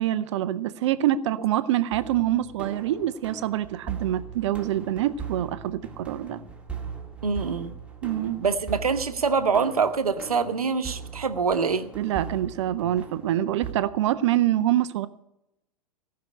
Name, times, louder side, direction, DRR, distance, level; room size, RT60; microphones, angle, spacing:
voice 1, 0.0-6.4 8.0-8.4 12.0-15.1, right 12 dB, 50° right, 14 dB, 0.7 m, -25 dB
sound 1, 1.9-13.7, right 6 dB, 5° right, 2.1 m, -39 dB
voice 2, 7.2-7.7 8.4-11.9, right 5 dB, 75° right, 10 dB, 1.1 m, -25 dB
17.5 x 6.1 x 8.5 m, 0.87 s
figure-of-eight pair, 95°, 19 cm